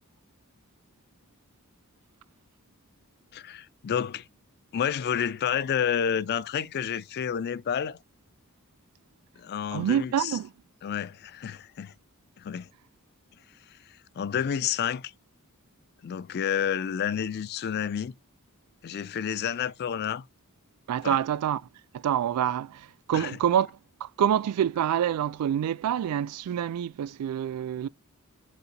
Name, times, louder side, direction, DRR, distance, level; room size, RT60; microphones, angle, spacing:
voice 1, 3.3-4.3 4.7-8.0 9.4-10.4 10.8-11.9 12.4-12.7 14.2-15.1 16.0-18.1 18.8-20.2 21.0-21.2 23.1-23.4, left 8 dB, 45° left, 0.3 m, -30 dB
voice 2, 9.7-10.5 20.9-21.6 21.9-27.9, right 9 dB, 90° right, 0.3 m, -27 dB
4.1 x 2.5 x 3.8 m
head